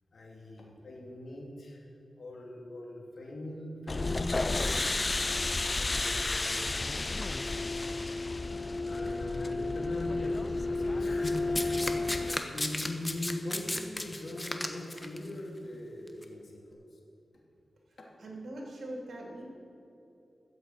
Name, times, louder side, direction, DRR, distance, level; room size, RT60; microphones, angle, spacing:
voice 1, 0.1-1.8 2.2-7.6 8.3-17.0 18.0-18.1, left 1 dB, 70° left, -2 dB, 2.9 m, -41 dB
sound 1, 3.9-12.4, left 3 dB, 40° left, 0.3 m, -31 dB
Domestic sounds home sounds, 11.2-15.2 16.1-16.2, left 1 dB, 20° left, 1.2 m, -34 dB
voice 2, 17.9-19.4, right 1 dB, 80° right, -2 dB, 3.2 m, -43 dB
13.5 x 8.0 x 7.8 m, 2.9 s
cardioid pair, 60°, 0 cm